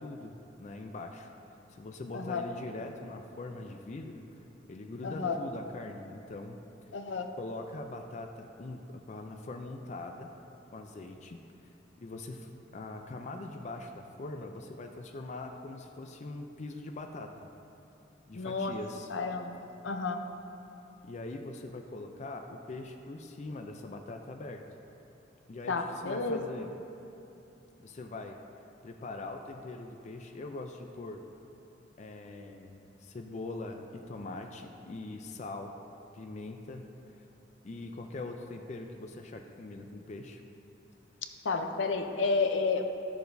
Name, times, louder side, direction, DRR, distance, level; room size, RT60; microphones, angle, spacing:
voice 1, 0.0-1.3 1.7-4.2 4.7-6.6 7.4-10.3 10.7-11.4 12.0-17.5 18.3-19.1 21.0-24.6 25.5-26.7 27.8-28.4 28.8-31.2 32.0-35.7 36.1-36.9 37.6-40.4, left 2 dB, 40° left, 4 dB, 0.4 m, -42 dB
voice 2, 5.0-5.4 6.9-7.3 18.3-18.7 19.1-19.6 19.8-20.2 25.7-26.4 41.4-42.8, left 4 dB, 80° left, 5 dB, 0.6 m, -31 dB
13.0 x 6.8 x 2.6 m, 2.8 s
head